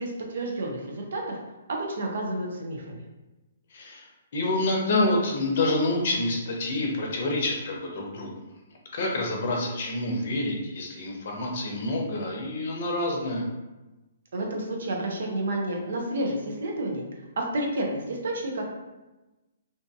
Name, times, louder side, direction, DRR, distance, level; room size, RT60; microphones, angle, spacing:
voice 1, 0.0-1.4 1.7-3.0 14.3-17.0 17.4-18.7, right 1 dB, 65° right, 0 dB, 0.6 m, -30 dB
voice 2, 3.7-4.1 4.3-8.3 8.9-13.5, left 2 dB, 55° left, 0 dB, 0.6 m, -27 dB
2.6 x 2.5 x 2.3 m, 1.1 s
figure-of-eight pair, 130°, 0 cm